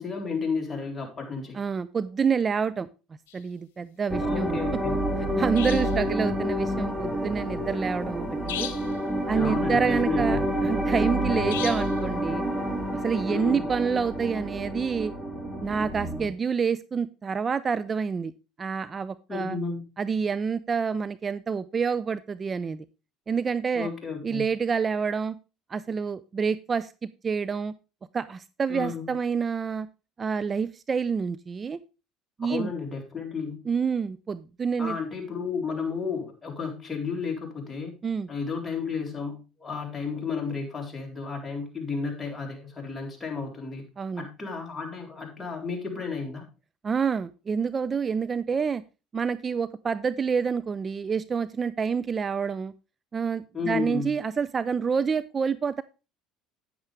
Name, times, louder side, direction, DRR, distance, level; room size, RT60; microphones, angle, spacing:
voice 1, 0.0-1.6 4.2-5.0 9.3-10.4 13.3-13.7 19.3-19.8 23.7-24.5 28.7-29.1 32.5-33.6 34.8-37.9 38.3-43.9 44.2-46.5 53.5-54.1, left 5 dB, 20° left, 1 dB, 3.9 m, -32 dB
voice 2, 1.5-2.9 3.3-4.6 5.4-8.7 9.3-12.4 13.0-15.1 15.6-18.3 18.6-19.6 20.0-22.8 23.3-23.9 24.2-25.4 25.7-26.9 27.2-27.7 28.1-29.9 30.2-31.8 32.4-32.7 33.7-35.0 38.0-38.3 44.0-44.3 46.8-48.8 49.1-52.7 53.1-55.8, right 6 dB, 35° right, 16 dB, 0.5 m, -28 dB
sound 1, 3.3-3.4 5.5-6.0 8.5-9.0 11.5-12.0, left 11 dB, 85° left, 1.1 m, -36 dB
sound 2, 4.1-16.3, equal, 10° right, 2.4 m, -28 dB
9.7 x 9.5 x 3.4 m, 0.30 s
hypercardioid pair, 75°, 0 cm